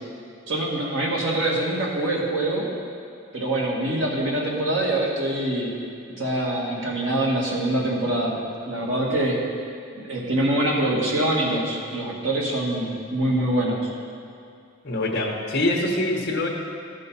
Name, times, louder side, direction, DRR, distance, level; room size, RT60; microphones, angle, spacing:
voice 1, 0.5-2.7 3.3-5.8 6.1-8.4 8.6-9.4 9.9-13.8, right 1 dB, 75° right, -3 dB, 1.9 m, -24 dB
voice 2, 14.8-16.5, left 1 dB, 50° left, -1 dB, 1.0 m, -24 dB
13.0 x 5.3 x 5.6 m, 2.4 s
head